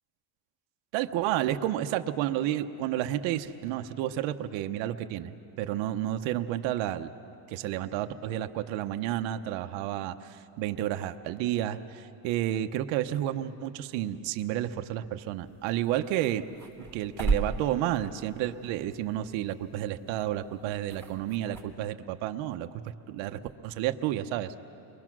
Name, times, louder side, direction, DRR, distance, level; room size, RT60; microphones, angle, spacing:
voice 1, 0.9-7.1 7.5-16.4 16.9-22.7 23.1-24.5, right 12 dB, 80° right, 7 dB, 1.0 m, -31 dB
sound 1, 15.4-21.6, right 4 dB, 5° left, 2.3 m, -37 dB
29.5 x 23.0 x 6.1 m, 2.7 s
cardioid pair, 160°, 44 cm